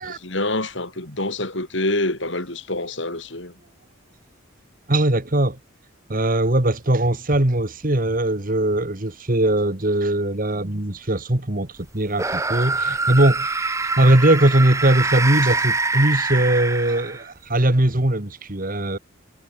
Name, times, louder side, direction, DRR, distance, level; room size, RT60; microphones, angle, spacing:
voice 1, 0.0-3.6, left 2 dB, 60° left, 5.9 m, -26 dB
voice 2, 4.9-5.6 6.1-19.0, right 1 dB, 45° right, 1.9 m, -20 dB
sound 1, 12.1-17.4, right 3 dB, 15° right, 0.9 m, -24 dB
head